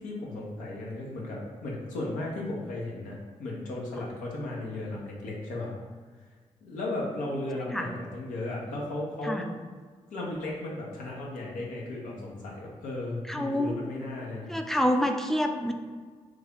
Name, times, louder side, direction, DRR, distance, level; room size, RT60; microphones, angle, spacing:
voice 1, 0.0-5.7 6.6-9.5 10.1-14.5, left 2 dB, 90° left, -3 dB, 0.7 m, -35 dB
voice 2, 13.3-13.8 14.5-15.7, equal, 5° left, 5 dB, 0.4 m, -27 dB
3.2 x 2.3 x 3.6 m, 1.5 s
supercardioid pair, 45°, 13 cm